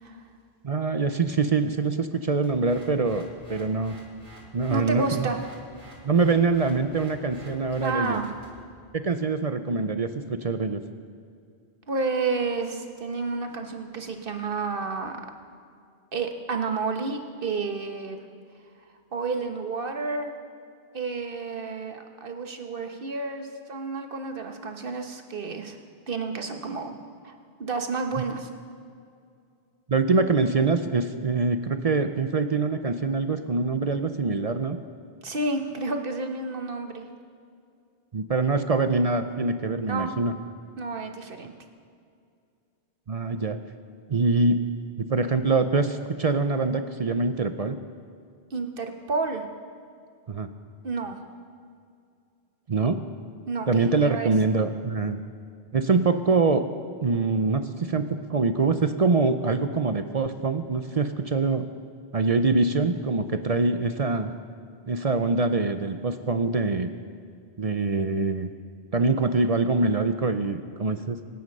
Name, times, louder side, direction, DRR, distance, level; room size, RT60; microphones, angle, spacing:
voice 1, 0.6-4.0 4.5-5.3 6.0-8.2 8.9-10.8 29.9-34.8 38.1-40.3 43.1-43.6 44.1-44.6 45.0-47.8 50.3-50.5 52.7-53.0 53.7-55.2 55.7-56.6 57.0-61.7 62.1-64.3 64.9-66.9 67.6-68.5 68.9-71.2, right 3 dB, 40° right, 9 dB, 0.6 m, -24 dB
sound 1, 2.4-8.6, right 1 dB, 85° right, 3.3 m, -49 dB
voice 2, 4.7-5.4 7.8-8.3 11.9-15.2 16.1-18.2 19.1-20.3 20.9-25.8 26.1-27.0 27.2-28.5 35.2-37.0 39.9-40.1 40.8-41.5 48.5-49.4 50.8-51.2 53.5-54.3, right 4 dB, 60° right, 5 dB, 1.4 m, -30 dB
25.0 x 9.4 x 5.4 m, 2.3 s
omnidirectional pair, 1.1 m